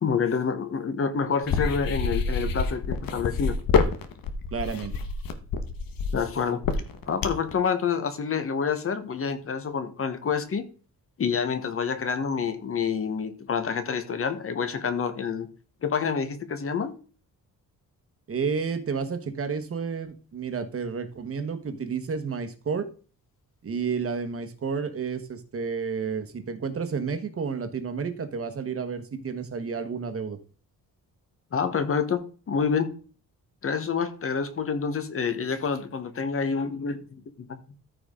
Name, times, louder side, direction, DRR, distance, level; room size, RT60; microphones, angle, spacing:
voice 1, 0.0-3.6 6.1-6.6 7.1-10.7 11.2-15.5 15.8-16.9 31.5-33.0 33.6-37.8, left 6 dB, 40° left, 1.2 m, -28 dB
sound 1, 1.4-7.5, left 5 dB, 75° left, 1.4 m, -26 dB
voice 2, 4.5-4.9 18.3-22.9 23.6-30.4, right 5 dB, 40° right, 1.2 m, -31 dB
14.0 x 5.0 x 3.7 m
wide cardioid pair, 155°, 35 cm